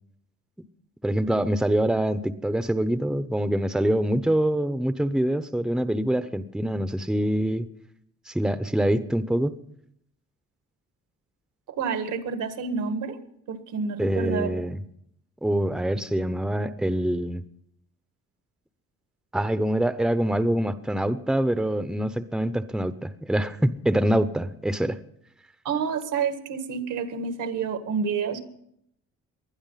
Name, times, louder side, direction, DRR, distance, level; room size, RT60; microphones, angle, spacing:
voice 1, 1.0-7.7 8.3-9.6 14.0-14.8 15.4-17.4 19.3-25.0, right 1 dB, ahead, 12 dB, 0.8 m, -25 dB
voice 2, 11.8-13.2 13.5-14.5 25.6-28.4, right 6 dB, 80° right, 8 dB, 1.9 m, -28 dB
20.0 x 11.5 x 5.7 m, 0.73 s
cardioid pair, 90°, 30 cm